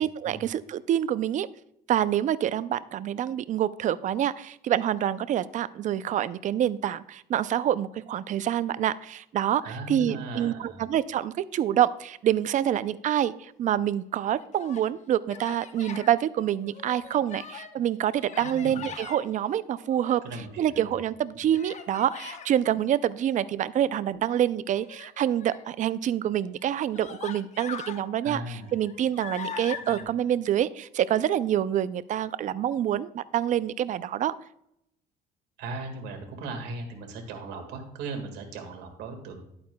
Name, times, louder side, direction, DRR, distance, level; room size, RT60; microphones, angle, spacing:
voice 1, 0.0-1.5 1.9-20.2 20.6-34.3, right 11 dB, 45° right, 16 dB, 0.4 m, -27 dB
voice 2, 9.6-10.8 18.4-18.9 20.2-21.0 21.3-21.4 28.2-28.7 29.8-30.1 35.6-39.4, right 2 dB, 85° right, 4 dB, 1.8 m, -38 dB
Human voice, 14.3-14.9 15.3-16.1 16.6-17.8 18.2-19.2 19.8-20.6 21.5-22.5 24.8-25.7 26.4-26.5 26.9-28.0 28.5-30.0, left 6 dB, 45° left, 0.9 m, -41 dB
11.5 x 8.6 x 2.2 m, 0.78 s
cardioid pair, 110°, 17 cm